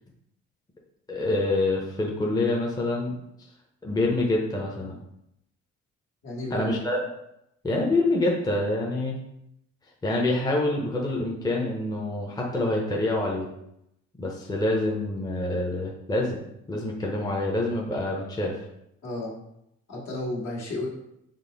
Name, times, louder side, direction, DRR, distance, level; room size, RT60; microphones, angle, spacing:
voice 1, 1.1-3.2 3.8-5.0 6.5-7.0 7.6-9.2 10.0-13.5 14.2-16.4 16.7-18.6, left 2 dB, 15° left, -1 dB, 0.7 m, -26 dB
voice 2, 6.2-6.8 19.0-19.3 19.9-20.9, left 2 dB, 65° left, -5 dB, 1.6 m, -32 dB
5.3 x 2.1 x 3.9 m, 0.81 s
cardioid pair, 90°, 30 cm